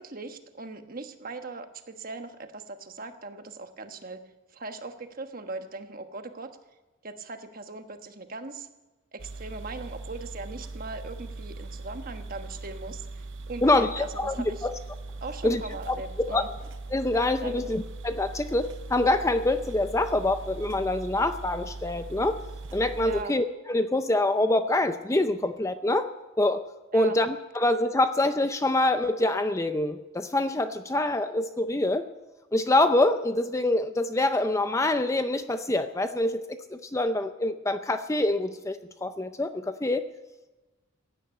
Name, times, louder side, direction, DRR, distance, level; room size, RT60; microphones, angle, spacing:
voice 1, 0.0-4.2 4.5-6.5 7.0-8.7 9.1-14.7 15.2-16.5 17.4-17.6 23.0-23.3 26.9-27.2, right 3 dB, 45° right, 7 dB, 1.3 m, -39 dB
sound 1, 9.2-23.2, right 3 dB, 60° right, 0.8 m, -40 dB
voice 2, 13.6-14.4 14.6-14.7 15.4-15.6 15.9-16.0 16.3-16.4 16.9-22.4 22.7-26.1 26.4-26.6 26.9-32.1 32.5-40.0, left 2 dB, 15° left, 9 dB, 0.5 m, -25 dB
16.0 x 9.8 x 9.0 m, 1.1 s
head